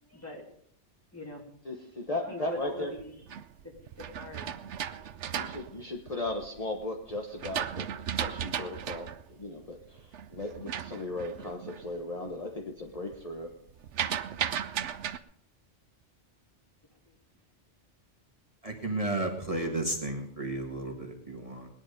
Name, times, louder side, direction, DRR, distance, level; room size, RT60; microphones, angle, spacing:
voice 1, 0.0-0.5 1.1-1.5 2.2-3.2 3.6-4.6 17.0-17.2, left 1 dB, 10° left, -1 dB, 3.0 m, -42 dB
voice 2, 1.7-2.9 5.3-7.9 8.1-13.5, left 2 dB, 30° left, 2 dB, 1.3 m, -37 dB
sound 1, 2.8-6.6 7.1-11.9 12.3-12.7 13.0-15.2, right 9 dB, 75° right, 1.0 m, -36 dB
voice 3, 18.6-21.7, right 2 dB, 30° right, 2 dB, 1.8 m, -33 dB
19.0 x 10.5 x 5.2 m, 0.66 s
omnidirectional pair, 1.2 m